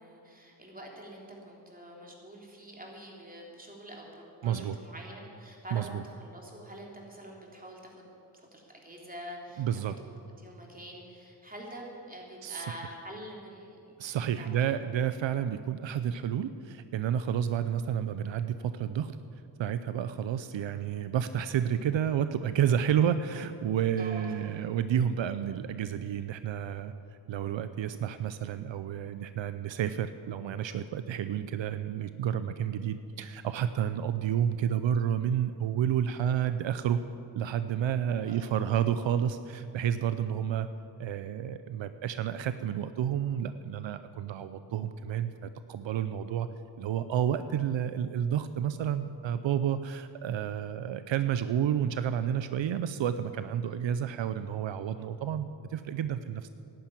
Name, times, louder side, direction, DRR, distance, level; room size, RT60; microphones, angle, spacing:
voice 1, 0.0-8.0 8.3-9.7 10.0-14.0 14.4-14.9 24.0-24.3 38.1-38.6, right 1 dB, 20° right, -1 dB, 3.3 m, -46 dB
voice 2, 4.4-4.7 5.7-6.0 9.6-9.9 12.4-12.7 14.0-19.2 19.6-26.9 27.3-37.0 37.3-40.7 41.0-46.5 46.8-56.5, right 9 dB, 80° right, 11 dB, 0.6 m, -30 dB
11.5 x 10.5 x 9.1 m, 2.6 s
cardioid pair, 75°, 45 cm